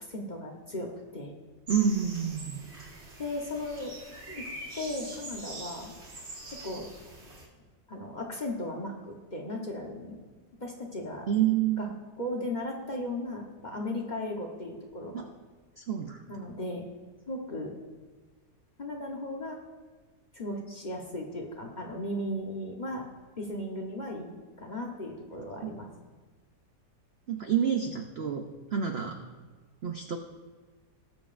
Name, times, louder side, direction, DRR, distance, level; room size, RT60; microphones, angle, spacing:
voice 1, 0.1-1.3 3.2-3.9 4.3-4.5 4.8-5.9 6.6-6.9 7.9-10.2 10.6-11.3 11.8-11.9 12.2-15.1 16.3-16.8 17.3-17.8 18.8-19.6 20.3-23.1 23.4-25.9, left 1 dB, 35° left, 0 dB, 1.0 m, -36 dB
sound 1, 1.7-7.5, right 1 dB, 40° right, 2.0 m, -43 dB
voice 2, 1.7-2.6 11.3-12.0 15.1-15.2 15.8-16.2 25.6-25.7 27.3-29.2 29.8-30.2, right 8 dB, 60° right, 4 dB, 0.6 m, -28 dB
18.5 x 7.2 x 2.5 m, 1.4 s
omnidirectional pair, 1.8 m